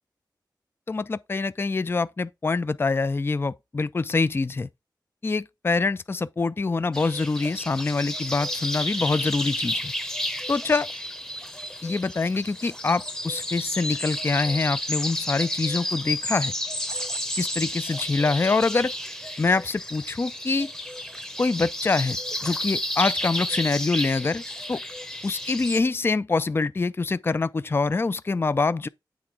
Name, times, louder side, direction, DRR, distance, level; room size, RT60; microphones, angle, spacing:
voice 1, 0.9-4.7 5.2-9.9 10.5-10.9 11.8-16.5 17.4-18.9 19.4-20.7 21.4-22.2 22.4-24.4 24.7-24.8 25.2-28.9, left 3 dB, 30° left, 0.3 m, -25 dB
sound 1, 6.9-25.8, left 1 dB, 10° left, 0.8 m, -31 dB
7.7 x 3.5 x 4.8 m
cardioid pair, 55°, 8 cm